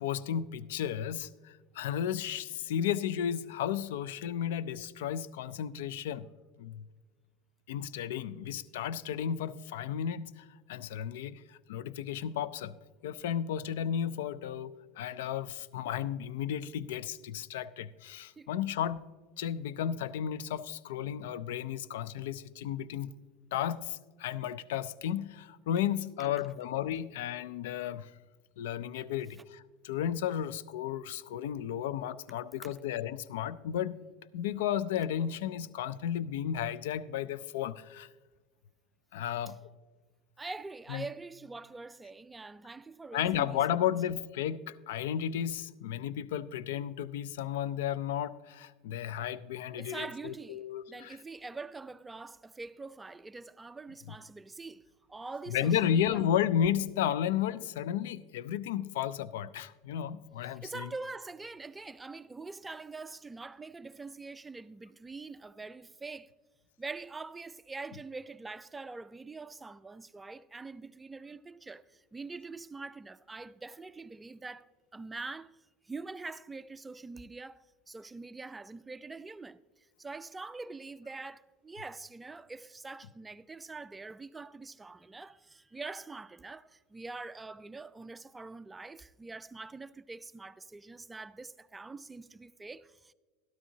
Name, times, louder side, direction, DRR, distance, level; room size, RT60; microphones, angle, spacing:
voice 1, 0.0-6.3 6.6-6.9 7.7-12.7 13.0-19.1 19.4-23.1 23.5-28.1 28.6-34.0 34.3-38.1 39.1-39.6 40.9-41.0 43.1-51.2 55.5-60.9, left 9 dB, 75° left, 0.3 m, -33 dB
voice 2, 40.4-43.9 49.8-56.3 60.4-66.3 66.8-93.1, right 3 dB, 15° right, 0.4 m, -44 dB
12.5 x 12.5 x 2.8 m
hypercardioid pair, 90°, 0 cm